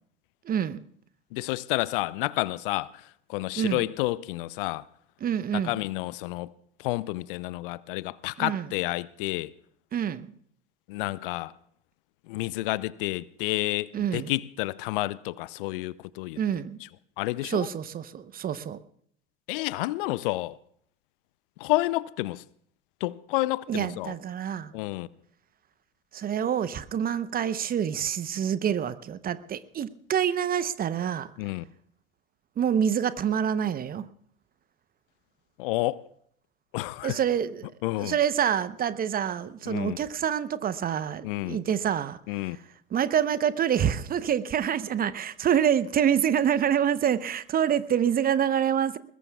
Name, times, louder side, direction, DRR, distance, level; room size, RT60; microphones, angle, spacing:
voice 1, 0.5-0.8 3.6-3.9 5.2-5.8 8.4-8.7 9.9-10.3 13.9-14.3 16.4-16.8 17.4-18.8 23.7-24.7 26.1-31.3 32.6-34.0 37.0-37.7 38.0-42.2 42.9-49.0, right 9 dB, 30° right, 0.9 m, -26 dB
voice 2, 1.3-2.9 3.3-4.8 5.5-6.5 6.8-9.5 10.9-11.5 12.3-16.4 17.2-17.7 19.5-20.6 21.6-22.4 23.0-24.1 24.7-25.1 31.4-31.6 35.6-36.0 36.7-37.2 37.8-38.2 39.7-40.0 41.2-41.6 42.3-42.6, left 19 dB, 60° left, 0.6 m, -30 dB
22.0 x 20.5 x 2.3 m
figure-of-eight pair, 75°, 31 cm